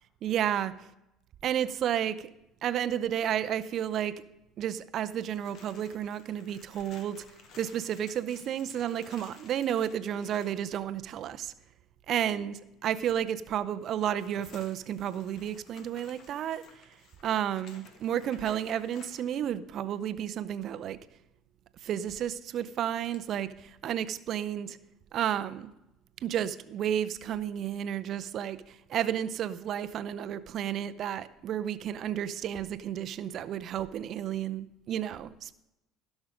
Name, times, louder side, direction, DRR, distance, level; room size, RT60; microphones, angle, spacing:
voice 1, 0.2-0.7 1.4-2.3 2.6-4.1 4.6-7.2 7.6-11.5 12.1-16.9 17.2-21.0 21.8-24.8 25.1-25.7 26.2-35.5, right 10 dB, 55° right, 0.6 m, -32 dB
sound 1, 5.1-10.6 13.9-19.4 22.5-23.2, left 4 dB, 60° left, 1.9 m, -55 dB
15.5 x 6.2 x 5.1 m
supercardioid pair, 90°, 0 cm